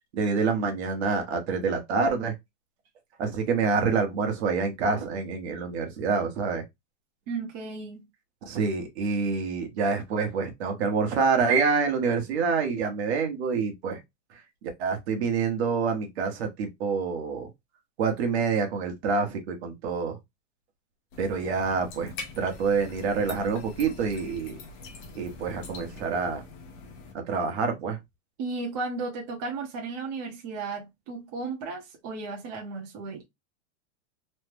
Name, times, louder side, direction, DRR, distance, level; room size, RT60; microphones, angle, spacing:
voice 1, 0.1-2.3 3.2-6.6 8.5-14.0 14.6-17.5 18.0-20.2 21.2-24.5 25.1-26.4 27.3-28.0, right 5 dB, 60° right, 1.1 m, -27 dB
voice 2, 7.3-8.0 28.4-33.3, right 3 dB, 35° right, 0.8 m, -34 dB
sound 1, 21.1-27.1, left 3 dB, 30° left, 0.7 m, -43 dB
3.2 x 2.1 x 3.3 m
supercardioid pair, 170°, 37 cm